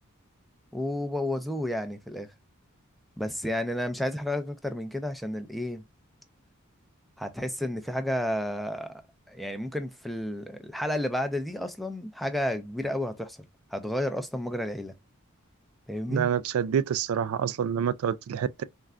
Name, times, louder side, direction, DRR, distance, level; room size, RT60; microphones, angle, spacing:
voice 1, 0.7-2.3 3.2-5.8 7.2-9.0 9.3-13.4 13.7-14.9 15.9-16.3, left 1 dB, ahead, 0.4 m, -31 dB
voice 2, 16.1-18.6, right 8 dB, 75° right, 0.3 m, -27 dB
3.7 x 2.2 x 2.3 m
head